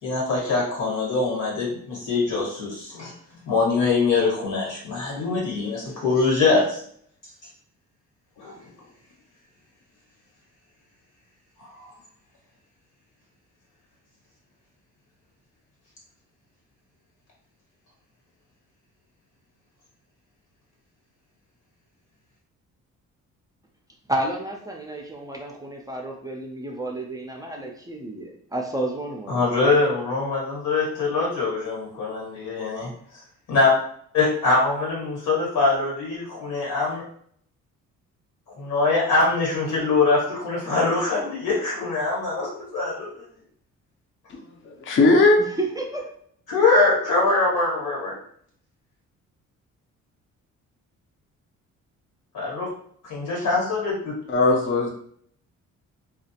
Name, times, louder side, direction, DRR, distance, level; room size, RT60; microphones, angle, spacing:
voice 1, 0.0-3.1 3.5-6.8 8.4-8.5 11.6-11.9 29.3-32.9 33.5-33.7 34.1-37.0 38.6-43.2 46.5-48.2 52.3-52.7 53.0-54.2, left 3 dB, 90° left, -3 dB, 1.3 m, -23 dB
voice 2, 24.1-29.5 45.5-46.1, right 1 dB, 10° right, 0 dB, 0.4 m, -31 dB
voice 3, 44.6-45.5 54.3-54.9, left 2 dB, 40° left, 1 dB, 0.5 m, -18 dB
2.3 x 2.1 x 2.8 m, 0.62 s
cardioid pair, 90°, 30 cm